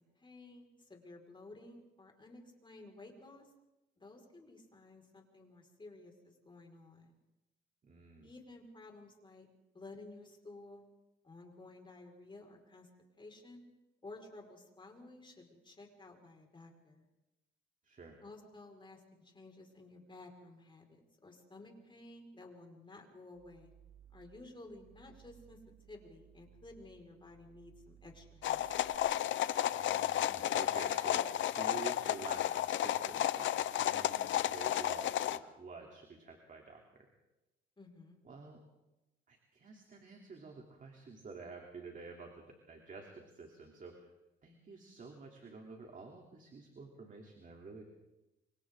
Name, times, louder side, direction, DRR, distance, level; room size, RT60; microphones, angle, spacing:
voice 1, 0.0-3.5 4.0-7.2 8.2-9.5 9.7-10.8 11.2-12.9 13.2-13.6 14.0-17.1 18.2-23.7 24.1-25.6 25.9-28.7 37.8-38.2, left 2 dB, 25° left, 1 dB, 5.1 m, -54 dB
voice 2, 7.8-8.3 17.8-18.2 29.7-37.1 38.2-38.6 39.3-44.1 44.4-47.8, right 4 dB, 40° right, 1 dB, 3.2 m, -50 dB
sound 1, 23.3-28.9, right 10 dB, 85° right, 3.2 m, -61 dB
sound 2, 28.4-35.4, left 12 dB, 70° left, 0.8 m, -33 dB
28.5 x 25.5 x 3.8 m, 0.97 s
cardioid pair, 90°, 20 cm